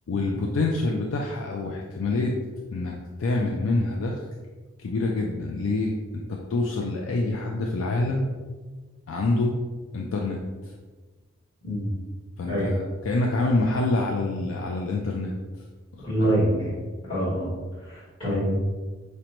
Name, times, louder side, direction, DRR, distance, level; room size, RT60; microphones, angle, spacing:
voice 1, 0.1-2.4 2.7-4.3 4.8-8.3 9.1-9.6 9.9-10.7 12.4-15.3 15.9-16.4, left 2 dB, 80° left, 0 dB, 0.4 m, -26 dB
voice 2, 16.0-16.7 17.0-18.6, right 1 dB, 25° left, -14 dB, 1.4 m, -26 dB
5.0 x 2.1 x 2.9 m, 1.3 s
head